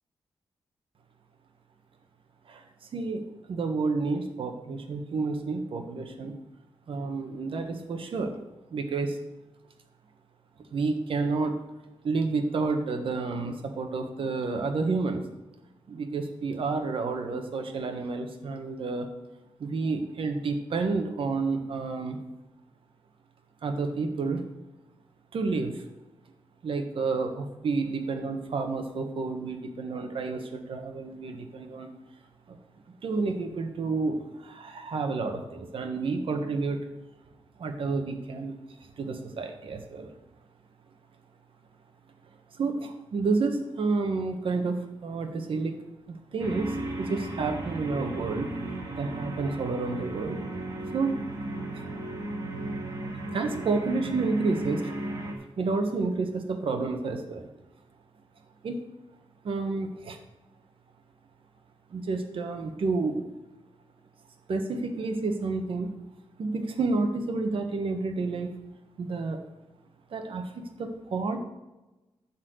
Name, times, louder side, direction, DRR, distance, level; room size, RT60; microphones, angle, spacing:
voice 1, 2.9-3.2 3.5-6.4 6.9-8.3 8.7-9.2 10.7-11.5 12.0-15.2 15.9-19.1 19.6-22.2 23.6-24.4 25.3-25.8 26.6-31.9 32.5-32.6 33.0-36.8 37.6-38.6 38.8-40.1 42.5-45.8 46.1-48.5 49.0-50.4 50.9-51.2 51.7-51.8 53.3-54.9 55.6-57.5 58.6-58.8 59.4-60.2 61.9-63.2 64.5-65.9 66.4-68.5 69.0-69.4 70.1-71.4, right 3 dB, 65° right, 5 dB, 1.4 m, -30 dB
sound 1, 46.4-55.3, right 2 dB, 35° right, 2.1 m, -35 dB
12.0 x 4.3 x 7.9 m, 1.0 s
wide cardioid pair, 145°, 10 cm